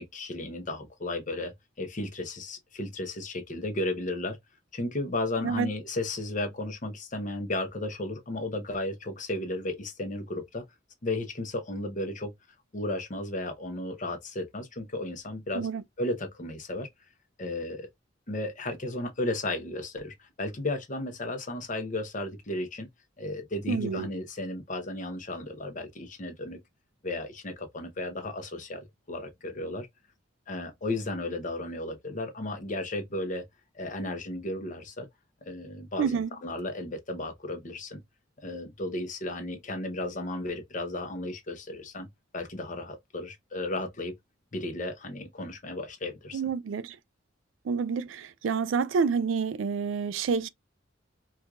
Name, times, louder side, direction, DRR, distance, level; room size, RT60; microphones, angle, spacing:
voice 1, 0.0-4.4 4.7-10.6 11.0-12.3 12.7-15.7 16.0-16.9 17.4-17.9 18.3-22.9 23.2-26.6 27.0-29.9 30.5-33.4 33.7-35.1 35.5-38.0 38.4-42.1 42.3-44.1 44.5-46.4, left 2 dB, 40° left, 0.8 m, -34 dB
voice 2, 23.7-24.1 36.0-36.3 46.3-47.0 47.6-50.5, right 5 dB, 75° right, 0.4 m, -28 dB
4.5 x 2.4 x 2.3 m
head